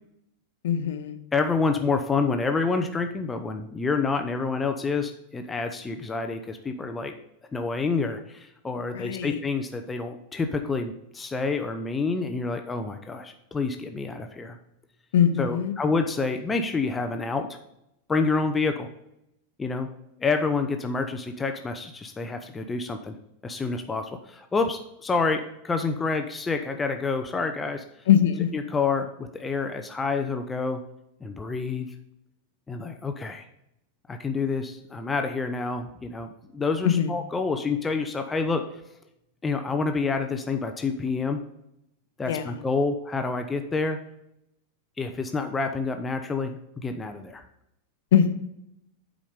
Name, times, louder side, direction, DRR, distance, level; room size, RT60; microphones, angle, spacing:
voice 1, 0.6-1.2 8.9-9.4 15.1-15.7 28.1-28.5 36.8-37.1 42.3-42.6 48.1-48.3, left 9 dB, 55° left, 9 dB, 0.8 m, -22 dB
voice 2, 1.3-7.1 7.5-14.6 15.4-17.6 18.1-18.9 19.6-19.9 20.2-23.2 23.4-27.8 28.5-30.8 31.2-31.9 32.7-33.5 34.1-38.6 39.4-41.4 42.2-44.0 45.0-47.4, left 4 dB, 15° left, 6 dB, 0.7 m, -28 dB
8.4 x 5.0 x 5.2 m, 0.82 s
figure-of-eight pair, 90°, 0 cm